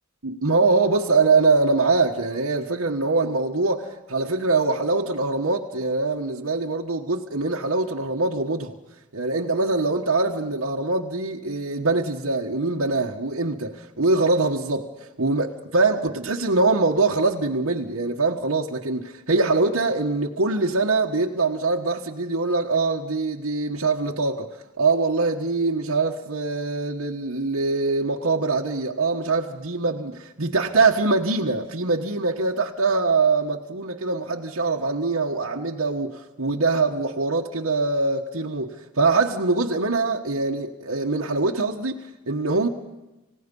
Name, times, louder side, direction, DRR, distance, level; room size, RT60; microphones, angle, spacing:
voice 1, 0.2-8.8 9.1-42.7, right 3 dB, 80° right, 1.4 m, -23 dB
29.5 x 17.0 x 5.5 m
head